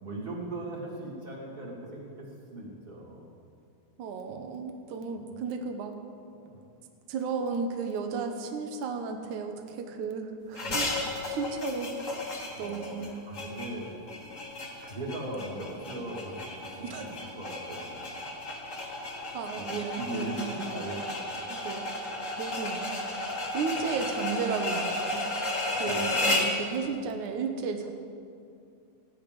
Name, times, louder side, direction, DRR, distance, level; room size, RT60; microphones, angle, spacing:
voice 1, 0.0-3.3 5.1-5.2 6.3-6.6 9.7-10.0 10.6-11.0 12.5-13.9 14.8-18.1 19.5-21.3 23.9-24.0 25.8-26.3, right 1 dB, 15° right, -5 dB, 2.2 m, -39 dB
voice 2, 4.0-6.0 7.1-10.9 11.3-12.0 12.6-13.2 16.8-17.1 19.3-20.4 21.5-21.8 22.3-22.9 23.5-25.3 25.7-27.9, right 5 dB, 70° right, 4 dB, 2.1 m, -34 dB
sound 1, 10.5-26.6, left 2 dB, 40° left, 1.1 m, -33 dB
16.5 x 10.5 x 5.2 m, 2.4 s
omnidirectional pair, 4.1 m